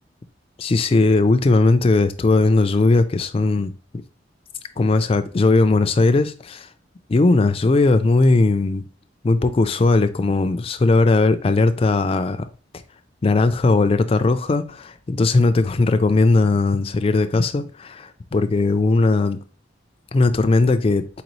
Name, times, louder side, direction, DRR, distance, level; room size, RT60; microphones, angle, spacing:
voice 1, 0.6-3.7 4.8-6.7 7.1-8.9 9.2-12.5 13.2-19.4 20.1-21.1, left 3 dB, 30° left, 0.3 m, -18 dB
4.2 x 3.9 x 3.0 m
head